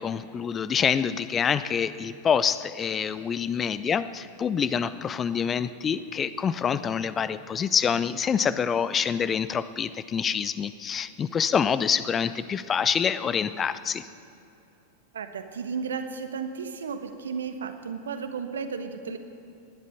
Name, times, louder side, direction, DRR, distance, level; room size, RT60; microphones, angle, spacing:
voice 1, 0.0-14.1, left 7 dB, 25° left, 15 dB, 0.5 m, -26 dB
voice 2, 15.1-19.2, right 5 dB, 65° right, 8 dB, 1.2 m, -34 dB
19.0 x 11.0 x 5.9 m, 2.8 s
figure-of-eight pair, 90°, 0 cm